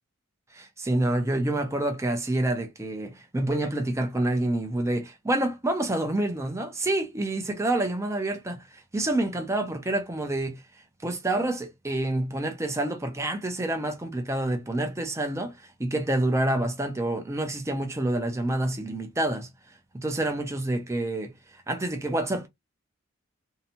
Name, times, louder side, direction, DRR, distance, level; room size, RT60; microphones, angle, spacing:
voice 1, 0.5-10.6 11.0-19.5 19.9-21.3 21.7-22.5, right 1 dB, 15° right, 0.5 m, -28 dB
2.7 x 2.1 x 2.8 m
head